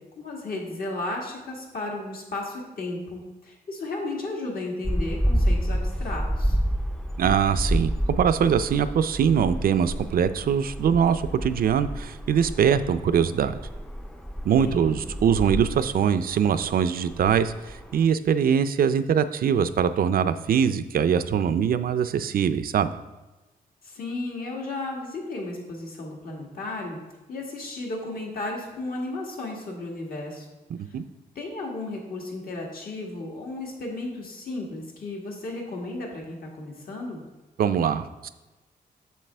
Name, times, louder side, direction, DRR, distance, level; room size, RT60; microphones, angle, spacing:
voice 1, 0.2-6.6 14.6-15.0 23.8-27.0 27.3-30.5 31.4-37.2, left 2 dB, 65° left, -1 dB, 1.7 m, -34 dB
sound 1, 4.8-18.0, equal, 5° left, 0.4 m, -29 dB
voice 2, 7.2-13.5 14.4-22.9 30.7-31.0 37.6-38.3, right 8 dB, 70° right, 12 dB, 0.4 m, -23 dB
7.5 x 7.1 x 3.4 m, 1.1 s
wide cardioid pair, 105°, 16 cm